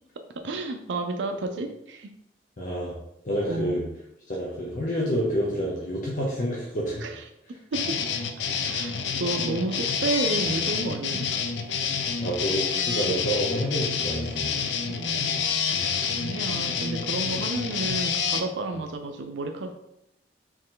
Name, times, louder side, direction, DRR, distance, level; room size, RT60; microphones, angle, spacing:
voice 1, 0.4-2.1 3.5-3.8 7.0-7.2 7.5-8.0 8.7-11.3 14.9-15.6 16.1-19.7, right 3 dB, 85° right, 5 dB, 0.5 m, -31 dB
voice 2, 2.6-2.9 3.2-3.8 4.3-7.0 12.2-14.6, equal, 45° left, -4 dB, 0.8 m, -28 dB
sound 1, 7.7-18.4, left 6 dB, 75° left, 0.4 m, -28 dB
4.5 x 3.1 x 3.8 m, 0.83 s
head